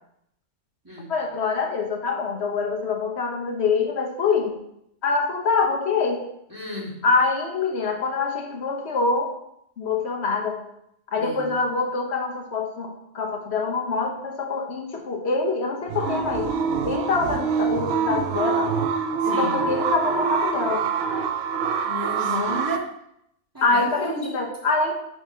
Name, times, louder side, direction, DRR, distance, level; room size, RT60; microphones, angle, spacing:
voice 1, 1.1-4.6 5.0-6.2 7.0-9.3 9.8-10.6 11.1-16.5 16.8-18.7 19.3-20.8 22.3-22.6 23.6-24.9, left 4 dB, 60° left, 3 dB, 1.2 m, -25 dB
voice 2, 6.5-7.0 11.2-11.5 19.2-19.6 21.8-22.9 23.5-24.4, equal, 15° right, -5 dB, 1.8 m, -33 dB
sound 1, 15.9-22.8, right 5 dB, 65° right, 0.7 m, -25 dB
6.3 x 3.5 x 5.6 m, 0.77 s
omnidirectional pair, 1.3 m